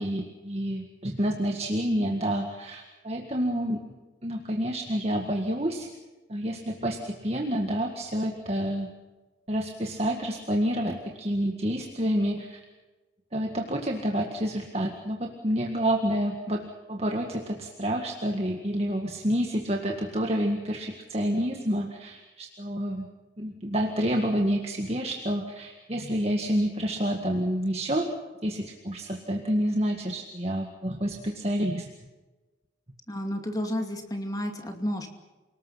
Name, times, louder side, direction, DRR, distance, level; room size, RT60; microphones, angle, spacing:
voice 1, 0.0-3.8 4.2-5.9 6.3-8.9 9.5-12.6 13.3-23.1 23.4-28.1 28.4-31.9, equal, 35° right, 2 dB, 1.9 m, -28 dB
voice 2, 33.1-35.1, equal, 20° left, 4 dB, 2.5 m, -31 dB
29.0 x 19.5 x 5.8 m, 1.2 s
head